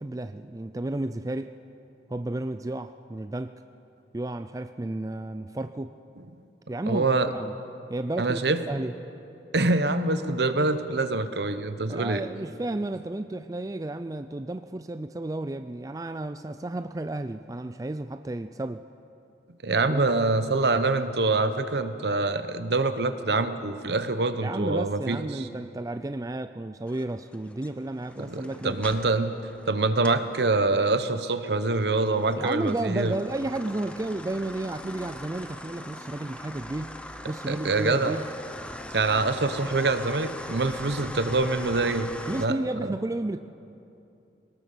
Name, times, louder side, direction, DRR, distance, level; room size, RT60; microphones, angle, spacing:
voice 1, 0.0-1.6 2.1-3.6 4.1-6.0 6.7-7.5 7.9-8.4 8.7-8.9 11.9-18.8 19.8-20.0 24.4-28.8 32.4-37.0 37.2-38.3 42.3-43.4, right 2 dB, 20° right, 10 dB, 0.4 m, -32 dB
voice 2, 6.9-7.3 8.2-8.6 9.5-12.2 19.6-25.5 28.2-29.3 29.7-33.2 37.5-38.2 38.9-42.1 42.4-42.6 42.8-42.9, right 3 dB, 70° right, 10 dB, 1.0 m, -25 dB
sound 1, 26.9-30.3 30.7-42.5, left 1 dB, 5° left, 0.8 m, -41 dB
21.5 x 18.5 x 6.9 m, 2.7 s
head